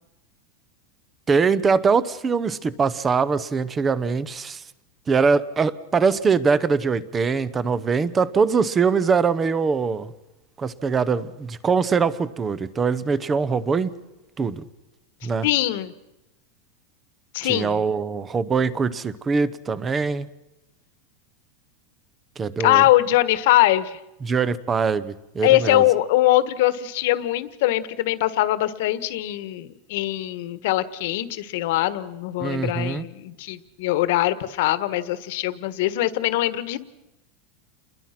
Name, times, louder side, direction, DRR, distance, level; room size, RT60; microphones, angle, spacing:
voice 1, 1.3-4.6 5.1-10.1 10.6-13.9 14.4-14.6 15.2-15.5 17.4-20.3 22.4-22.9 24.2-25.9 32.4-33.1, right 5 dB, 15° right, 18 dB, 0.8 m, -22 dB
voice 2, 15.4-15.9 17.3-17.8 22.6-24.0 25.4-36.8, left 15 dB, 55° left, 14 dB, 1.5 m, -22 dB
29.0 x 21.5 x 6.0 m, 0.95 s
supercardioid pair, 170°, 0 cm